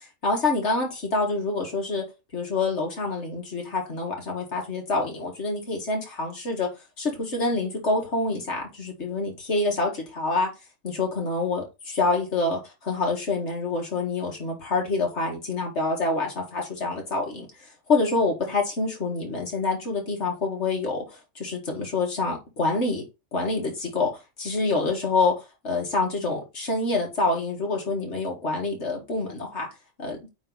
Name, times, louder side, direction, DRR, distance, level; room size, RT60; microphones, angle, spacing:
voice 1, 0.2-2.0 2.3-6.7 7.0-10.5 10.8-17.5 17.9-23.0 23.3-24.1 24.4-25.3 25.6-29.7 30.0-30.2, left 3 dB, 60° left, 2.2 m, -26 dB
8.6 x 3.0 x 3.9 m
omnidirectional pair, 1.3 m